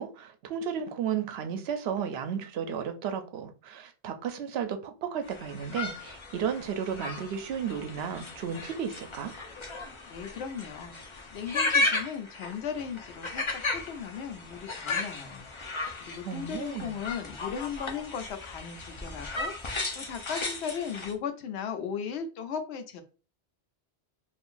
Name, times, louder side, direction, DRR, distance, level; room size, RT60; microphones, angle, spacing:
voice 1, 0.0-9.3 16.3-16.9, right 7 dB, 75° right, 0.8 m, -33 dB
sound 1, 5.2-21.1, left 3 dB, 35° left, 0.5 m, -35 dB
voice 2, 10.1-11.0 11.3-15.5 16.0-23.0, left 7 dB, 85° left, 0.9 m, -37 dB
3.7 x 2.4 x 2.5 m
omnidirectional pair, 1.1 m